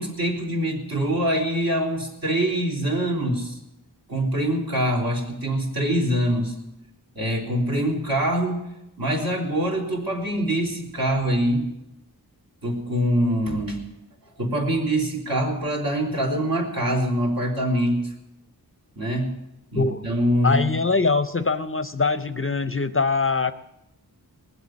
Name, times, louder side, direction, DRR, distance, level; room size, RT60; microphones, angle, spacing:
voice 1, 0.0-3.6 4.1-6.5 7.2-8.6 9.0-11.7 12.6-13.8 14.4-18.1 19.0-19.3 19.7-20.6, right 1 dB, 55° right, -2 dB, 3.6 m, -24 dB
voice 2, 20.4-23.5, left 4 dB, 35° left, 11 dB, 0.5 m, -23 dB
20.0 x 7.9 x 7.4 m, 0.89 s
wide cardioid pair, 70°, 41 cm